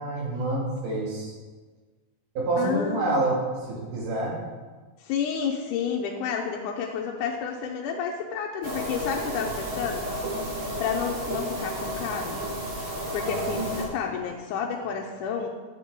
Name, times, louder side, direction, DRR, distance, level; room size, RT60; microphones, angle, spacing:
voice 1, 0.0-1.3 2.4-3.4 3.7-4.4 13.2-13.4, right 2 dB, 85° right, -3 dB, 3.6 m, -27 dB
voice 2, 2.6-3.2 5.0-10.1 10.8-12.4 13.1-15.5, left 6 dB, 85° left, 1 dB, 2.1 m, -30 dB
sound 1, 8.6-13.8, equal, 50° right, 2.3 m, -32 dB
10.0 x 7.2 x 3.7 m, 1.3 s
omnidirectional pair, 3.6 m